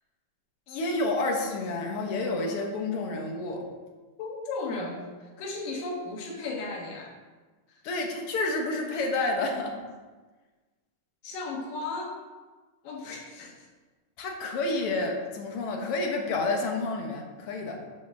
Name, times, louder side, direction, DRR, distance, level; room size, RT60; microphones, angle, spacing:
voice 1, 0.7-3.6 7.8-9.8 14.2-17.8, left 2 dB, 60° left, 2 dB, 1.5 m, -29 dB
voice 2, 4.2-5.1 5.4-7.1 11.2-12.1 12.8-13.5, left 3 dB, 75° left, 0 dB, 3.1 m, -35 dB
7.0 x 5.9 x 6.3 m, 1.3 s
omnidirectional pair, 3.9 m